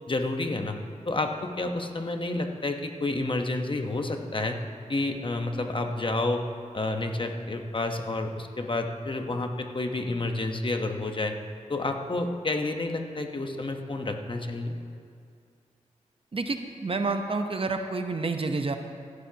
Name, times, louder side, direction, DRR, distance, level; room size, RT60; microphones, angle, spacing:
voice 1, 0.1-0.8 1.1-4.6 4.9-6.4 6.7-11.4 11.7-14.8, left 2 dB, 40° left, 4 dB, 1.0 m, -30 dB
voice 2, 16.3-18.8, right 3 dB, 45° right, 6 dB, 0.8 m, -29 dB
16.0 x 11.5 x 2.9 m, 2.3 s
cardioid pair, 55°, 13 cm